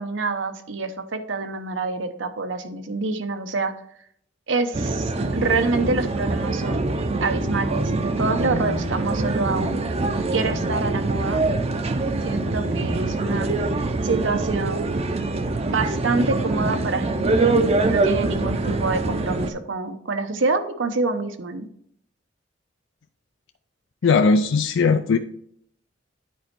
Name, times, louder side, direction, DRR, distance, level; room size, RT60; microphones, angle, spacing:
voice 1, 0.0-3.7 4.5-6.8 7.2-9.8 10.3-11.4 12.2-13.5 14.0-14.9 15.6-21.7, right 3 dB, 85° right, 9 dB, 0.8 m, -26 dB
sound 1, 4.7-19.5, right 2 dB, 35° right, 0.6 m, -24 dB
voice 2, 24.0-25.2, left 4 dB, 75° left, 8 dB, 0.4 m, -18 dB
9.3 x 4.3 x 4.5 m, 0.67 s
head